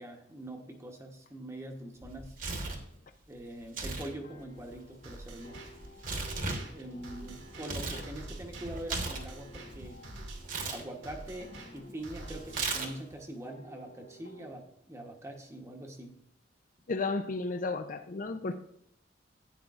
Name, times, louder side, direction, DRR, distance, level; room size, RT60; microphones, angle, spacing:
voice 1, 0.0-2.3 3.3-5.6 6.7-10.0 10.7-16.2, right 1 dB, 15° right, 2 dB, 0.9 m, -43 dB
Tearing, 2.0-2.9 3.6-4.1 4.4-8.1 8.4-9.9 10.4-10.8 12.5-13.1, right 3 dB, 45° right, 1.2 m, -37 dB
sound 1, 4.0-14.5, left 1 dB, 65° left, 3.6 m, -54 dB
sound 2, 5.0-13.0, right 2 dB, 80° right, 1.9 m, -47 dB
voice 2, 16.9-18.5, left 3 dB, 45° left, 7 dB, 0.5 m, -33 dB
11.5 x 8.9 x 2.4 m, 0.72 s
head